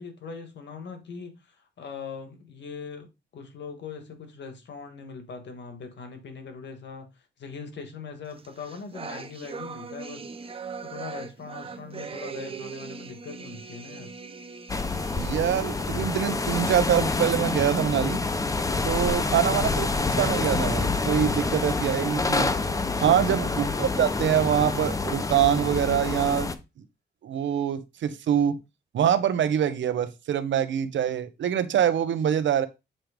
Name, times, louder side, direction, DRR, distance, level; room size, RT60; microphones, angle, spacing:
voice 1, 0.0-10.2 10.5-14.1 18.8-19.2 23.0-23.6, left 5 dB, 65° left, 1.7 m, -41 dB
sound 1, 8.4-16.2, right 5 dB, 30° right, 0.6 m, -40 dB
sound 2, 14.7-26.6, left 3 dB, 15° left, 0.6 m, -27 dB
voice 2, 15.2-18.2 18.8-19.9 20.1-22.5 23.0-26.5 27.2-28.6 28.9-32.7, right 9 dB, 80° right, 0.8 m, -24 dB
sound 3, 22.4-25.4, right 9 dB, 60° right, 1.4 m, -49 dB
7.5 x 3.1 x 5.1 m
wide cardioid pair, 145°, 19 cm